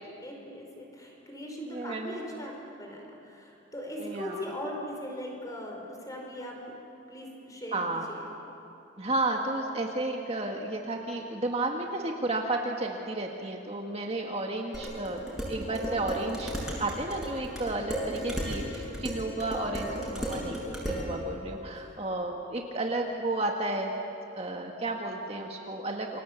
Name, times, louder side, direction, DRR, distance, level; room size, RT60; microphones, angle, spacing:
voice 1, 0.2-2.5 2.8-6.6 7.1-8.2, equal, 20° left, 0 dB, 5.2 m, -39 dB
voice 2, 1.6-2.2 4.0-4.5 7.7-8.0 9.0-16.5 16.8-23.9 24.4-26.2, right 2 dB, 30° right, 1 dB, 1.8 m, -32 dB
Dishes pots and pans, 14.7-21.1, equal, ahead, 7.5 m, -35 dB
29.0 x 25.0 x 8.4 m, 2.8 s
head